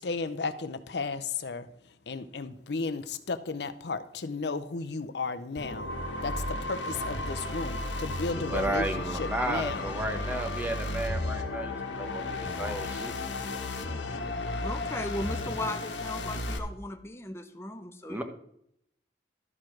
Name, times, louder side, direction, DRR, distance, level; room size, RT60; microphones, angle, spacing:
voice 1, 0.0-1.7 2.1-5.9 6.2-9.9, left 4 dB, 70° left, 10 dB, 0.6 m, -34 dB
sound 1, 5.6-16.6, left 2 dB, 90° left, 1.2 m, -34 dB
voice 2, 8.5-13.1 18.1-18.2, right 1 dB, 10° right, 5 dB, 0.9 m, -33 dB
voice 3, 14.5-18.2, left 1 dB, 15° left, 6 dB, 0.6 m, -37 dB
12.0 x 4.9 x 5.9 m, 0.73 s
head